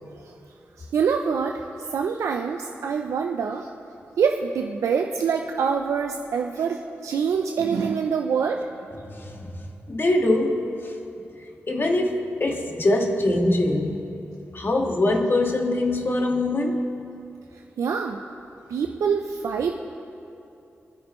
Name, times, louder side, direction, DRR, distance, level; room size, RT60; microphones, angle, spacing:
voice 1, 0.8-3.7 4.2-8.7 17.5-18.2 18.7-19.7, right 6 dB, 85° right, 3 dB, 0.6 m, -25 dB
voice 2, 9.1-9.5 9.9-10.9 11.7-14.1 14.5-16.9, left 1 dB, 45° left, 1 dB, 1.9 m, -23 dB
26.5 x 10.0 x 3.2 m, 2.7 s
cardioid pair, 45°, 5 cm